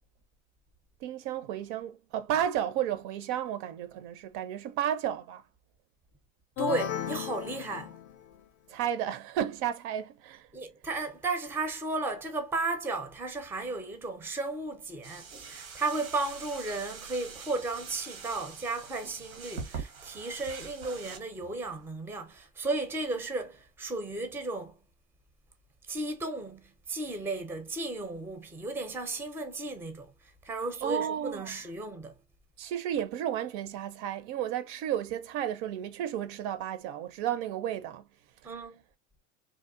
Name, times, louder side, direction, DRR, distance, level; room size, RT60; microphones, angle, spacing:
voice 1, 1.0-5.4 8.7-10.5 30.8-31.5 32.6-38.0, right 10 dB, 60° right, 0.5 m, -32 dB
sound 1, 6.6-8.4, left 10 dB, 50° left, 0.5 m, -35 dB
voice 2, 6.6-8.0 10.5-24.8 25.9-30.1 30.4-32.2 38.4-38.8, right 3 dB, 5° right, 0.4 m, -34 dB
sound 2, 15.0-21.9, right 5 dB, 90° right, 0.8 m, -44 dB
2.7 x 2.1 x 2.2 m
hypercardioid pair, 90°, 40 cm